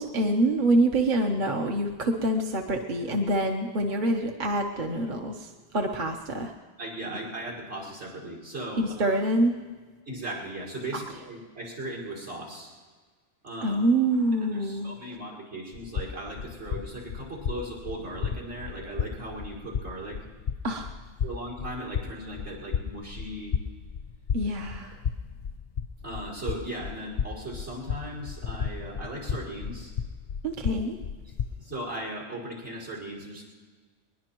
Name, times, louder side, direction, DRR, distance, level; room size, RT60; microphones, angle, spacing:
voice 1, 0.0-6.5 8.8-9.5 13.6-14.9 20.6-20.9 24.3-25.0 30.4-31.0, right 1 dB, 45° right, 3 dB, 1.1 m, -26 dB
voice 2, 6.8-9.2 10.1-12.7 13.4-13.8 14.4-20.2 21.2-23.6 24.8-24.9 26.0-29.9 31.6-33.4, right 1 dB, 70° right, -2 dB, 5.3 m, -37 dB
sound 1, 15.7-31.6, left 7 dB, 50° left, 0.5 m, -34 dB
21.0 x 21.0 x 3.0 m, 1.4 s
omnidirectional pair, 1.2 m